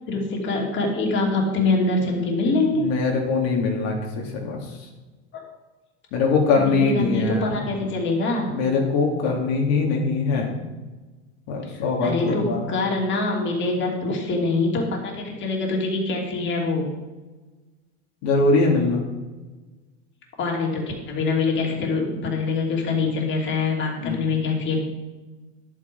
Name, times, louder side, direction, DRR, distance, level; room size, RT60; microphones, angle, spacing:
voice 1, 0.1-2.8 5.3-5.4 6.5-8.6 11.7-16.9 20.4-24.8, left 3 dB, 35° left, -1 dB, 2.9 m, -24 dB
voice 2, 2.7-4.6 6.1-7.6 8.5-10.6 11.5-12.6 18.2-19.0 23.9-24.2, left 4 dB, 75° left, -1 dB, 2.7 m, -22 dB
11.0 x 8.5 x 5.4 m, 1.2 s
supercardioid pair, 130°, 33 cm